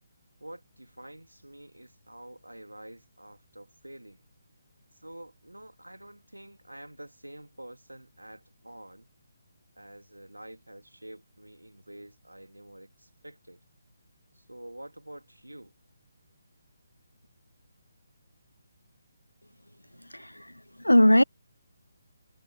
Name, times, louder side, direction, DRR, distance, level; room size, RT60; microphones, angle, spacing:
voice 1, 0.4-4.2 5.0-9.1 9.7-13.6 14.3-15.7, right 1 dB, 80° right, 2.4 m, -48 dB
voice 2, 20.1-20.5 20.8-21.2, left 1 dB, 85° left, 0.4 m, -19 dB
figure-of-eight pair, 145°, 0 cm